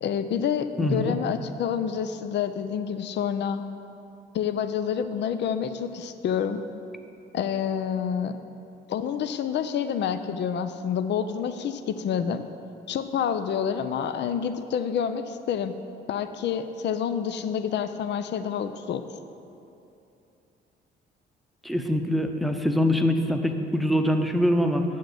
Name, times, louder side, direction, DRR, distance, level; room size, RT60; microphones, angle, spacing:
voice 1, 0.0-3.6 4.3-6.6 7.3-8.4 8.9-12.4 12.9-15.7 16.1-19.0, left 8 dB, 60° left, 10 dB, 0.6 m, -28 dB
voice 2, 0.8-1.2 21.6-24.8, left 1 dB, ahead, 5 dB, 0.8 m, -24 dB
8.0 x 6.5 x 8.2 m, 2.8 s
cardioid pair, 90°, 20 cm